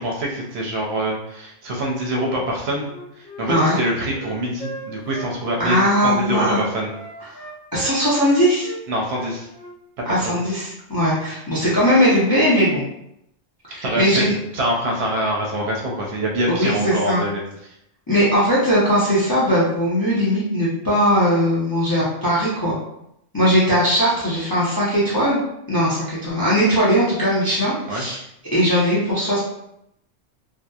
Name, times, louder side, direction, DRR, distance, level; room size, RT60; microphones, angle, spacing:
voice 1, 0.0-2.9 3.2-6.9 8.9-9.5 10.1-10.3 13.8-17.7 27.9-28.0, right 1 dB, 65° right, -2 dB, 0.8 m, -25 dB
Wind instrument woodwind instrument, 2.8-6.2 6.5-9.8, right 2 dB, 70° left, 1.1 m, -36 dB
voice 2, 3.5-3.8 5.6-6.6 7.7-8.7 10.1-12.8 13.7-14.2 16.5-17.2 18.1-22.7 23.3-25.4 25.7-28.2 28.5-29.4, equal, 30° left, -8 dB, 0.4 m, -19 dB
2.7 x 2.1 x 2.2 m, 0.79 s
omnidirectional pair, 1.3 m